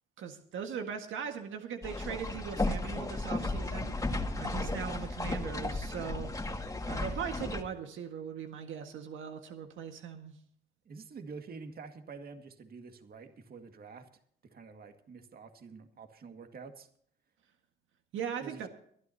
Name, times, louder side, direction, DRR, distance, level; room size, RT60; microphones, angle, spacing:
voice 1, 0.2-4.0 4.4-6.3 6.8-10.4 18.1-18.7, right 7 dB, 80° right, 5 dB, 1.7 m, -39 dB
sound 1, 1.8-7.6, left 2 dB, 15° left, 2.1 m, -34 dB
voice 2, 10.9-14.1 14.4-16.9 18.4-18.7, right 5 dB, 50° right, 6 dB, 2.0 m, -47 dB
23.0 x 12.5 x 2.8 m, 0.64 s
cardioid pair, 90°, 20 cm